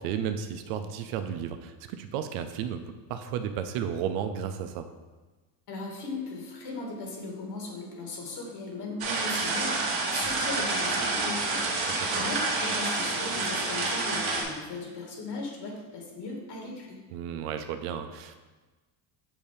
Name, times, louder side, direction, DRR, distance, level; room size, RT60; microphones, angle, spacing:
voice 1, 0.0-4.9 12.0-12.3 17.1-18.4, right 8 dB, 80° right, 8 dB, 0.6 m, -33 dB
voice 2, 5.7-11.7 12.1-17.0, left 3 dB, 55° left, -1 dB, 1.9 m, -37 dB
sound 1, 9.0-14.4, right 3 dB, 50° right, 1.4 m, -28 dB
7.1 x 2.7 x 5.0 m, 1.2 s
cardioid pair, 120°, 48 cm